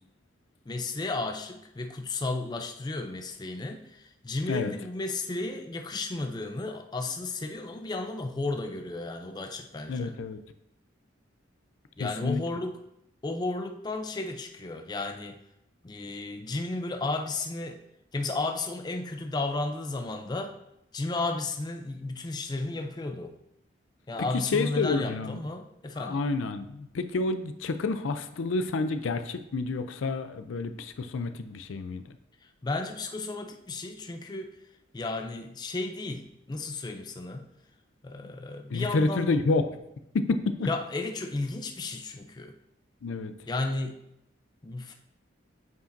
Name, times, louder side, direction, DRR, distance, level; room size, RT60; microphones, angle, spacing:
voice 1, 0.7-10.1 12.0-12.8 13.2-15.4 15.8-17.8 18.1-20.6 20.9-23.3 24.1-26.2 32.4-34.5 34.9-37.4 38.0-39.3 40.7-42.5 43.5-44.0 44.6-44.9, left 2 dB, 20° left, 5 dB, 0.4 m, -33 dB
voice 2, 9.9-10.4 12.0-12.4 24.5-25.4 26.0-32.0 38.7-39.8 40.1-40.7 43.0-43.3, left 3 dB, 85° left, 9 dB, 0.4 m, -29 dB
8.1 x 5.0 x 2.6 m, 0.82 s
head